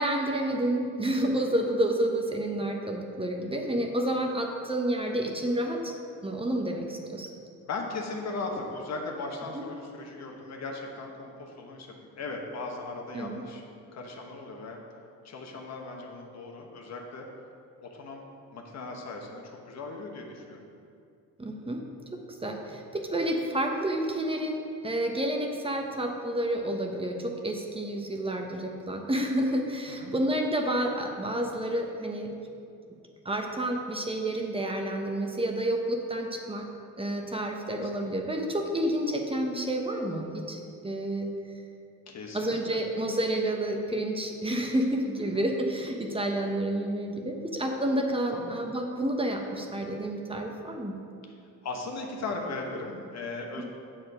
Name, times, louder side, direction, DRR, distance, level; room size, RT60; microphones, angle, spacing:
voice 1, 0.0-6.0 6.2-7.3 9.5-9.6 13.1-13.4 21.4-21.8 22.3-32.3 33.2-36.7 37.0-41.3 42.3-51.0, right 1 dB, 20° right, 2 dB, 1.0 m, -29 dB
voice 2, 5.0-5.3 7.6-13.6 13.9-14.8 15.2-17.3 17.8-18.2 18.5-20.6 25.8-26.0 29.9-30.1 37.7-38.1 42.1-42.8 45.1-45.4 48.3-48.6 50.5-50.6 51.6-53.6, left 3 dB, 60° left, 1 dB, 1.3 m, -38 dB
7.4 x 7.0 x 4.9 m, 2.5 s
cardioid pair, 90°, 30 cm